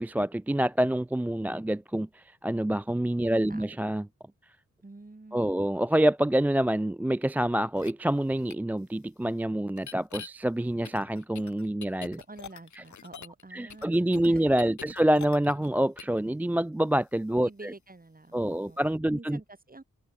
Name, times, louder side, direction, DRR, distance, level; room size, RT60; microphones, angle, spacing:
voice 1, 0.0-4.1 5.3-12.2 13.5-17.7 18.3-19.4, right 1 dB, 5° right, 0.3 m, -27 dB
voice 2, 3.2-3.7 4.8-5.6 12.2-15.0 17.4-19.8, right 2 dB, 25° right, 4.0 m, -48 dB
sound 1, 7.8-7.9 8.5-8.6 9.8-10.3 10.8-13.4 13.7-15.7 16.0-16.2, left 8 dB, 60° left, 1.2 m, -44 dB
cardioid pair, 45°, 32 cm